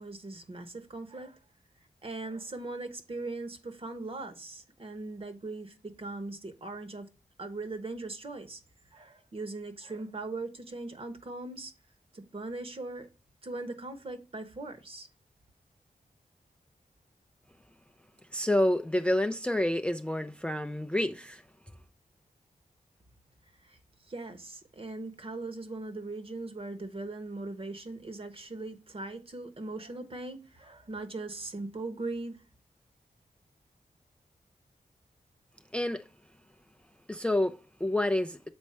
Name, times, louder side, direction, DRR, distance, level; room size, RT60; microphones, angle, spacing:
voice 1, 0.0-1.4 2.0-7.1 7.4-8.6 8.9-11.7 12.1-13.1 13.4-15.1 23.6-23.8 24.0-32.4, right 2 dB, 40° right, 1.2 m, -40 dB
voice 2, 18.3-21.4 35.7-36.1 37.1-38.5, left 1 dB, 10° left, 0.4 m, -28 dB
7.2 x 4.4 x 4.3 m
wide cardioid pair, 115°, 15 cm